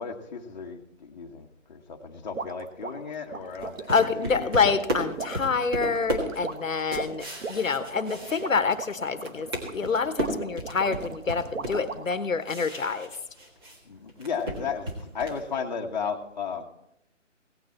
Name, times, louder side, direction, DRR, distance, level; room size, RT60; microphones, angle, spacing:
voice 1, 0.0-4.7 13.8-16.6, left 6 dB, 35° left, 1 dB, 1.2 m, -34 dB
sound 1, 2.4-12.3, right 4 dB, 80° right, 1.3 m, -38 dB
sound 2, 3.6-8.9 9.2-13.8 14.1-15.5, equal, 20° right, 1.5 m, -34 dB
voice 2, 3.9-13.1, left 5 dB, 85° left, 11 dB, 1.2 m, -27 dB
16.5 x 9.2 x 4.3 m, 0.79 s
hypercardioid pair, 160°, 38 cm